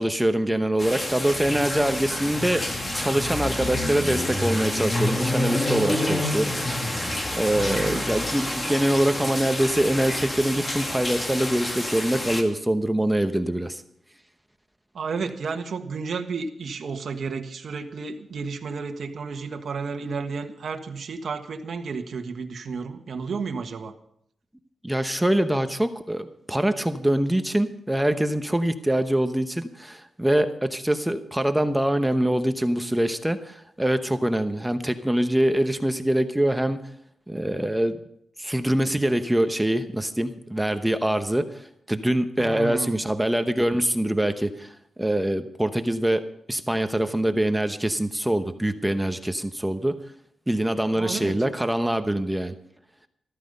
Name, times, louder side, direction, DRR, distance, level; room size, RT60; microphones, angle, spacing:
voice 1, 0.0-2.7 3.0-6.8 7.3-13.8 24.8-36.8 37.3-38.0 38.4-50.0 50.5-52.5, right 1 dB, 5° right, 9 dB, 0.9 m, -24 dB
sound 1, 0.8-12.4, left 1 dB, 20° left, 2.2 m, -28 dB
voice 2, 7.5-8.0 14.9-23.9 42.4-43.0 51.0-51.4, right 5 dB, 60° right, 6 dB, 1.4 m, -32 dB
14.0 x 13.5 x 5.4 m, 0.71 s
cardioid pair, 100°, 0 cm